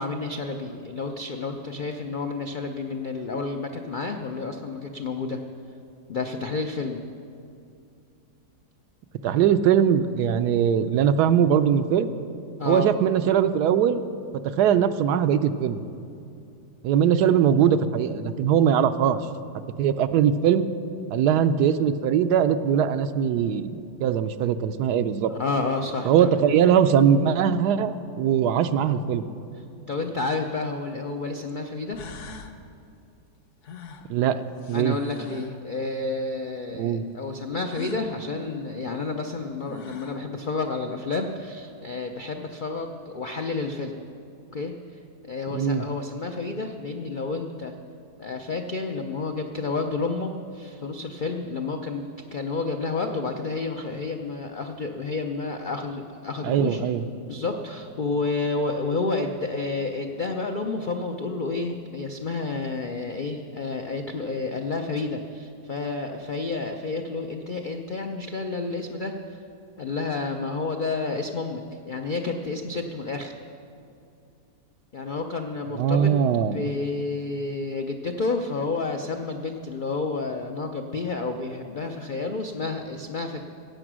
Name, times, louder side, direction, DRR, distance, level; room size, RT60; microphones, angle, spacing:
voice 1, 0.0-5.4 6.1-7.0 12.6-12.9 25.3-26.3 29.9-32.0 34.7-43.9 44.5-47.7 48.2-56.8 57.3-69.4 69.8-73.3 74.9-76.2 76.5-83.4, left 3 dB, 75° left, 4 dB, 0.4 m, -30 dB
voice 2, 9.2-12.1 12.7-14.0 14.4-15.8 16.8-19.2 19.8-20.7 21.1-25.3 26.0-29.2 34.1-34.4 34.7-35.0 36.7-37.0 45.5-45.9 56.4-57.0 75.8-76.6, right 8 dB, 75° right, 11 dB, 1.1 m, -21 dB
sound 1, 31.5-31.6 31.9-32.6 33.6-35.6 37.6-38.1 39.3-39.4 39.7-40.3, left 3 dB, 55° left, 0.9 m, -43 dB
16.0 x 8.7 x 6.2 m, 2.6 s
omnidirectional pair, 1.8 m